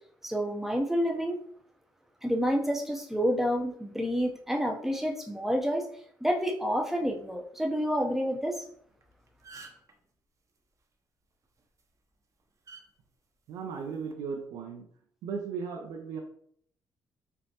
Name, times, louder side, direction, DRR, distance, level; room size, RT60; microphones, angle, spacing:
voice 1, 0.2-1.4 2.2-5.9 6.2-8.6, equal, 5° right, 2 dB, 0.7 m, -29 dB
sound 1, 8.9-9.0 9.3-9.9 11.6-11.8 12.7-12.8 13.9-14.1, right 4 dB, 40° right, 0.7 m, -48 dB
voice 2, 13.5-14.9 15.2-16.2, right 5 dB, 80° right, 1 dB, 0.5 m, -36 dB
5.2 x 2.1 x 2.9 m, 0.64 s
supercardioid pair, 70°, 8 cm